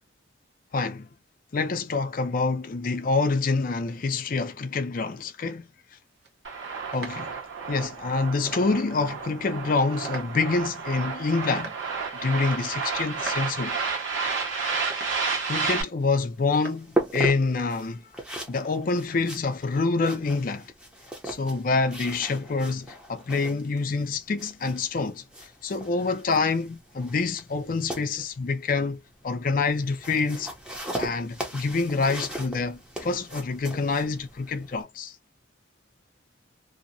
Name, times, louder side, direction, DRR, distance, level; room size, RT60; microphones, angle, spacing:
voice 1, 0.7-1.1 1.5-5.7 6.9-7.3 7.7-11.8 12.2-13.9 15.5-18.0 18.5-20.7 21.2-30.5 31.0-35.1, left 4 dB, 45° left, 0.4 m, -27 dB
sound 1, 6.0-17.6, right 3 dB, 60° right, 1.0 m, -46 dB
sound 2, 6.4-15.8, right 5 dB, 80° right, 1.3 m, -31 dB
sound 3, 16.0-34.8, right 1 dB, 5° right, 0.6 m, -38 dB
2.7 x 2.0 x 2.6 m
head